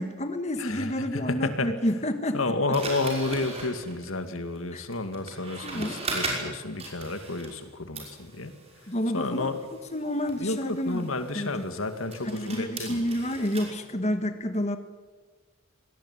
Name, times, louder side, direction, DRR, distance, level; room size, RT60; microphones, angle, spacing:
voice 1, 0.0-2.4 4.7-4.8 5.6-5.9 8.9-9.5 9.9-11.0 11.3-11.6 12.2-14.8, equal, 35° left, 8 dB, 1.5 m, -29 dB
voice 2, 0.6-1.7 2.3-8.5 8.8-9.7 10.4-13.0, left 2 dB, 80° left, 9 dB, 2.3 m, -31 dB
sound 1, 2.7-7.7 7.9-13.7, right 2 dB, 30° right, 5.8 m, -38 dB
25.0 x 18.5 x 9.7 m, 1.4 s
head